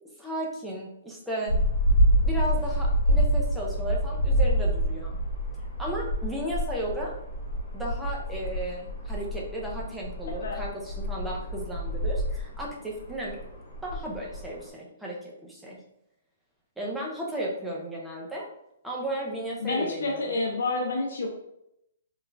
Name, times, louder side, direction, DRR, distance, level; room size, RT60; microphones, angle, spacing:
voice 1, 0.0-1.5 2.2-5.2 5.8-7.2 7.7-13.4 13.8-15.8 16.8-18.5 18.8-20.3, right 1 dB, ahead, -4 dB, 0.4 m, -34 dB
sound 1, 1.5-14.7, equal, 45° left, 1.2 m, -27 dB
voice 2, 10.3-10.6 19.6-21.3, left 3 dB, 70° left, 0 dB, 0.6 m, -29 dB
3.3 x 3.0 x 2.5 m, 0.80 s
hypercardioid pair, 180°, 0 cm